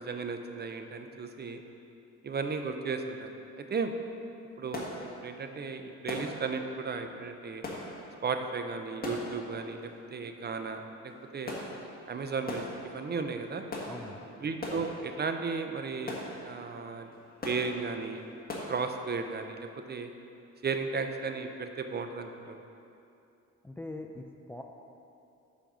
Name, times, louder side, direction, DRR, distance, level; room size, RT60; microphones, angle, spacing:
voice 1, 0.0-1.6 2.2-3.3 3.7-3.9 4.6-4.9 5.2-7.6 8.2-11.6 12.1-12.7 12.9-13.6 14.4-16.1 16.4-17.1 17.4-18.2 18.7-20.1 20.6-22.6, right 4 dB, 35° right, 6 dB, 0.6 m, -35 dB
sound 1, 4.4-18.8, left 2 dB, 30° left, 1.6 m, -43 dB
voice 2, 13.8-14.3 23.6-24.6, left 2 dB, 5° left, 3 dB, 0.4 m, -42 dB
7.0 x 5.2 x 6.1 m, 2.7 s
cardioid pair, 90°, 30 cm